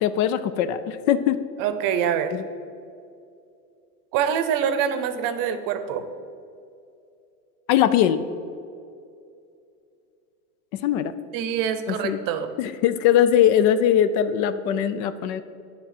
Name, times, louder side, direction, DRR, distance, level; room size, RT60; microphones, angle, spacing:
voice 1, 0.0-1.4 2.3-2.5 7.7-8.2 10.7-11.1 11.9-12.2 12.6-15.4, left 10 dB, 65° left, 13 dB, 0.6 m, -21 dB
voice 2, 1.6-2.3 4.1-6.1 11.3-12.5, right 8 dB, 45° right, 10 dB, 0.7 m, -25 dB
9.7 x 3.7 x 5.8 m, 2.5 s
supercardioid pair, 115°, 46 cm